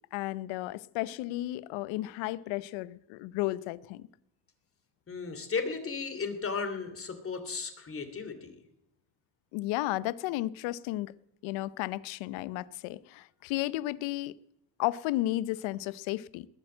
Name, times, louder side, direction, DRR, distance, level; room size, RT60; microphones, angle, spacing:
voice 1, 0.1-4.1 9.5-11.1 11.4-14.3 14.8-16.5, left 17 dB, 80° left, 0.8 m, -33 dB
voice 2, 5.1-8.6, left 5 dB, 30° left, 2.9 m, -35 dB
20.5 x 8.8 x 7.8 m
cardioid pair, 110°, 46 cm